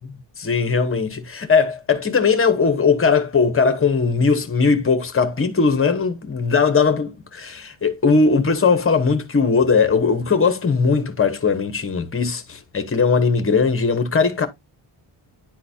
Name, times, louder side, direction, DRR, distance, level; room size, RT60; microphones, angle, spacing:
voice 1, 0.0-14.5, left 5 dB, 25° left, 0.9 m, -19 dB
10.5 x 3.9 x 2.7 m
wide cardioid pair, 155°, 50 cm